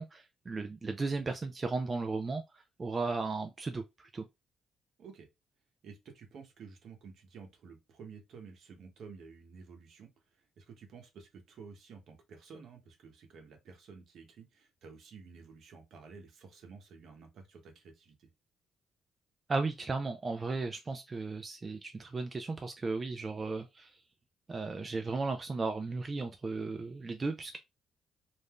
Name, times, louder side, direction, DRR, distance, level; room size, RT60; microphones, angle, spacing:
voice 1, 0.0-4.3 19.5-23.9 24.5-27.6, right 3 dB, 30° right, 0.4 m, -35 dB
voice 2, 5.8-18.3, right 5 dB, 70° right, 0.9 m, -52 dB
2.6 x 2.2 x 3.4 m
cardioid pair, 90°, 0 cm